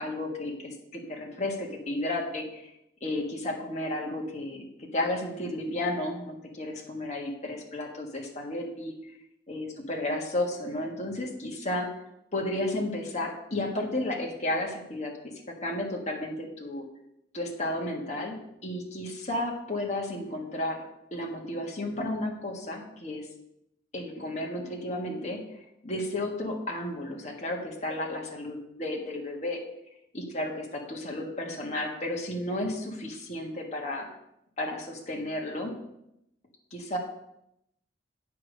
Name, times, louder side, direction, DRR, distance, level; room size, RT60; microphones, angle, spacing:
voice 1, 0.0-2.6 3.0-8.9 9.5-11.9 12.3-16.8 17.3-20.8 21.1-23.3 23.9-25.4 25.8-29.6 30.1-34.1 34.6-35.7 36.7-37.0, left 1 dB, 40° left, 0 dB, 1.6 m, -33 dB
8.7 x 4.8 x 6.4 m, 0.81 s
head